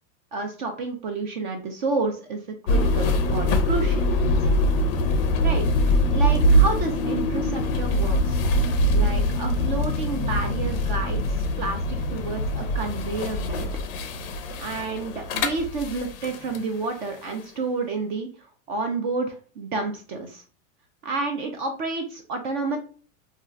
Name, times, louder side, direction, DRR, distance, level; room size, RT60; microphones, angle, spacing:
voice 1, 0.3-4.5 5.4-5.7 6.1-8.4 8.9-13.7 14.6-20.4 21.0-22.8, right 3 dB, 40° right, 5 dB, 0.4 m, -30 dB
sound 1, 2.7-16.6, equal, 45° left, 0.4 m, -23 dB
2.4 x 2.1 x 3.7 m, 0.40 s
supercardioid pair, 165°, 39 cm